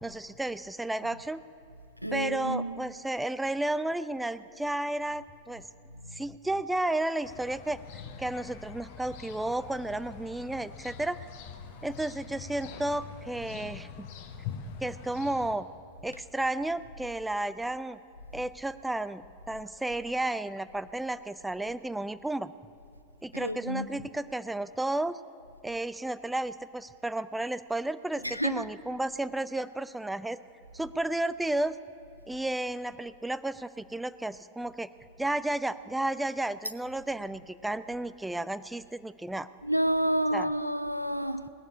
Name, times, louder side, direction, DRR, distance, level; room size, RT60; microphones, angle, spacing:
voice 1, 0.0-1.4 2.1-5.7 6.1-7.8 8.2-11.2 11.8-14.1 14.8-15.7 16.0-18.0 18.3-22.5 23.2-25.2 25.6-30.4 30.7-31.8 32.3-34.9 35.2-39.5 40.3-40.5, right 1 dB, 5° right, 0.4 m, -32 dB
voice 2, 2.0-2.8 6.1-6.2 23.3-24.1 28.2-28.7 39.6-41.5, right 1 dB, 90° right, 0.5 m, -30 dB
sound 1, 7.2-15.6, left 7 dB, 50° left, 1.0 m, -44 dB
18.5 x 6.9 x 9.5 m
figure-of-eight pair, 90°, 0 cm